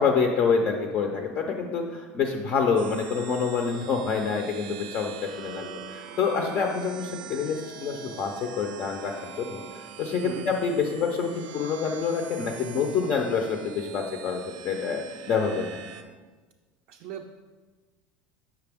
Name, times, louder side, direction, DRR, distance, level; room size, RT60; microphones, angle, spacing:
voice 1, 0.0-15.7, left 5 dB, 35° left, 3 dB, 0.5 m, -27 dB
sound 1, 2.8-16.0, right 7 dB, 90° right, 0.6 m, -42 dB
voice 2, 16.9-17.4, right 8 dB, 45° right, 3 dB, 0.4 m, -38 dB
7.5 x 5.8 x 3.5 m, 1.3 s
cardioid pair, 175°, 4 cm